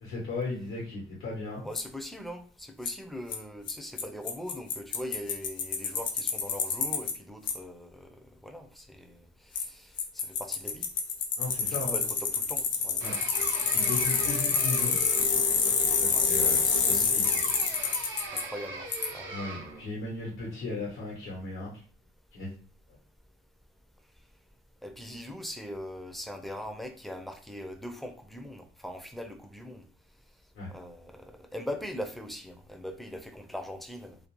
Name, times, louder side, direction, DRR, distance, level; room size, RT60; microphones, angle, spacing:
voice 1, 0.0-1.7 11.4-11.9 13.0-13.1 13.7-15.0 16.0-17.4 19.3-21.7 22.3-22.5 30.5-30.7, left 3 dB, 90° left, 1.0 m, -36 dB
voice 2, 1.6-10.9 11.7-13.0 16.1-16.3 16.9-17.8 18.3-19.3 24.8-29.8 30.7-34.2, equal, ahead, 0.4 m, -41 dB
Bicycle, 1.8-1.9 2.9-3.0 3.3-3.4 3.7-3.8 4.0-4.1 4.3-7.1 7.5-7.6 9.5-9.6 10.0-18.4 18.9-19.1, left 5 dB, 70° left, 0.6 m, -27 dB
sound 1, 13.0-15.6 17.2-19.9, right 3 dB, 90° right, 0.6 m, -40 dB
2.4 x 2.1 x 3.0 m
cardioid pair, 90°, 20 cm